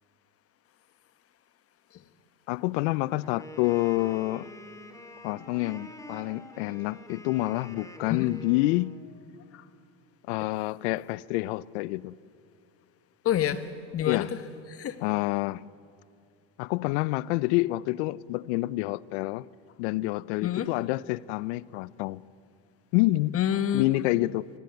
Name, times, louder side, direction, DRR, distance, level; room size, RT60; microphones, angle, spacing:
voice 1, 2.5-4.5 5.2-9.0 10.3-12.2 14.1-14.3 15.0-15.6 16.6-19.5 19.8-22.2 22.9-23.4 23.7-24.5, left 19 dB, 75° left, 0.7 m, -28 dB
Wind instrument woodwind instrument, 3.2-9.1, left 1 dB, 10° left, 2.7 m, -46 dB
voice 2, 13.2-14.3 14.7-15.0 20.4-20.7 23.3-23.9, left 10 dB, 40° left, 1.5 m, -27 dB
23.5 x 19.0 x 9.3 m
supercardioid pair, 95°, 35 cm